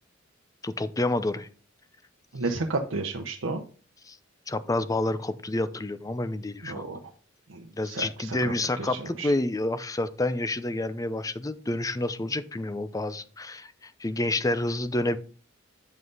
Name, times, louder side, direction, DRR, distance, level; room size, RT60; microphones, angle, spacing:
voice 1, 0.6-1.5 4.1-4.2 4.5-6.9 7.7-15.2, left 2 dB, 15° left, 13 dB, 0.6 m, -29 dB
voice 2, 2.3-3.6 6.6-7.0 7.5-8.4 8.8-9.3, right 3 dB, 75° right, 2 dB, 0.9 m, -32 dB
9.3 x 5.5 x 4.0 m, 0.39 s
head